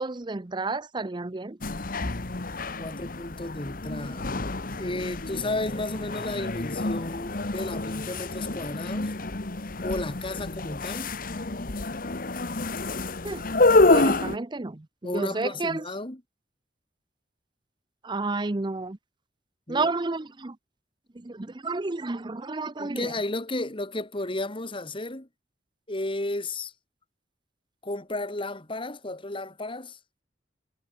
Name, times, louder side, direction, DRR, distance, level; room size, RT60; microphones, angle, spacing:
voice 1, 0.0-1.6 13.2-13.4 13.9-15.8 18.0-19.0 19.7-20.5 21.3-23.1, right 3 dB, 25° right, 0.6 m, -30 dB
sound 1, 1.6-14.4, left 2 dB, 50° left, 1.4 m, -27 dB
voice 2, 2.8-4.3 4.8-9.1 9.8-11.1 15.0-16.2 19.7-19.9 22.8-25.3 25.9-26.7 27.8-30.0, left 2 dB, 30° left, 2.3 m, -33 dB
head